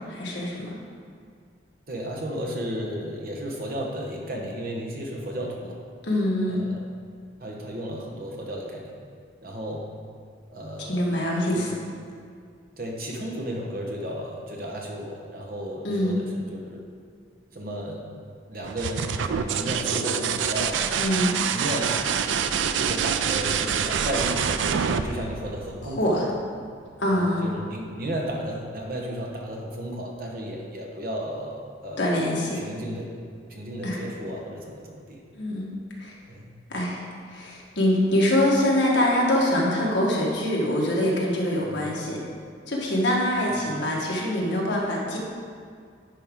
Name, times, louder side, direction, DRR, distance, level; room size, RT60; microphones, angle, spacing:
voice 1, 0.1-0.8 6.1-6.6 10.9-11.7 15.8-16.2 21.0-21.4 26.0-26.2 27.0-27.5 32.0-32.6 33.8-34.0 35.4-35.7 36.0-36.1 36.7-37.0 37.3-42.2 42.7-45.2, left 1 dB, 70° left, -3 dB, 1.5 m, -24 dB
voice 2, 1.9-5.8 6.5-6.8 7.4-8.9 9.4-9.8 10.5-11.1 11.5-11.7 12.8-16.8 17.5-18.0 18.5-21.1 21.5-22.0 22.8-24.7 25.0-26.1 27.1-32.1 32.5-33.1 33.5-35.2 36.3-36.5 41.7-42.0 43.5-43.6, equal, 50° right, -1 dB, 1.1 m, -33 dB
sound 1, 18.6-26.2 28.0-28.6, right 7 dB, 80° right, 0.4 m, -26 dB
10.0 x 5.1 x 3.7 m, 2.2 s
head